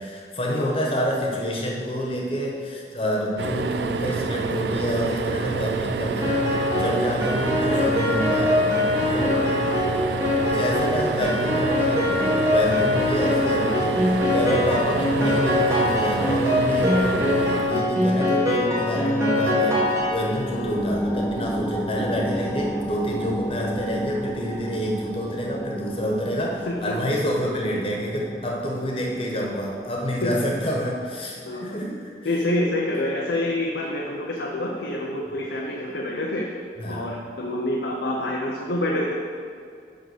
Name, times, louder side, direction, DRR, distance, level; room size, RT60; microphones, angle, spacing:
voice 1, 0.0-6.4 6.7-8.6 9.0-9.7 10.4-32.1 35.3-35.4 36.8-37.1, equal, 30° left, -1 dB, 1.4 m, -27 dB
sound 1, 3.4-18.6 20.3-20.5 20.8-20.9, right 4 dB, 75° right, 0.4 m, -28 dB
Piano, 6.2-20.6, left 1 dB, 15° right, 1.5 m, -23 dB
voice 2, 9.3-10.3 26.7-27.0 30.2-30.3 31.4-31.8 32.2-36.5 36.9-39.1, left 1 dB, 85° left, -2 dB, 0.9 m, -27 dB
sound 2, 19.4-30.5 30.9-31.0, equal, 10° left, 0.5 m, -33 dB
11.0 x 3.8 x 6.4 m, 2.3 s
head